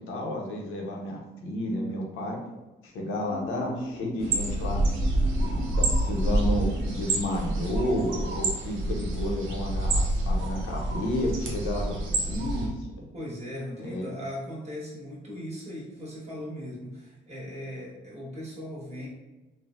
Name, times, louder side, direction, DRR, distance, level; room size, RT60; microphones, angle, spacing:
voice 1, 0.1-2.4 2.8-4.8 5.4-12.9 13.8-14.1, left 1 dB, 85° left, -1 dB, 0.6 m, -31 dB
sound 1, 3.3-8.3, equal, 5° left, 0.5 m, -42 dB
sound 2, 4.2-12.7, right 1 dB, 80° right, 0.6 m, -27 dB
voice 2, 13.1-19.1, equal, 30° right, -6 dB, 1.3 m, -38 dB
3.1 x 2.0 x 2.5 m, 1.1 s
cardioid pair, 90°, 20 cm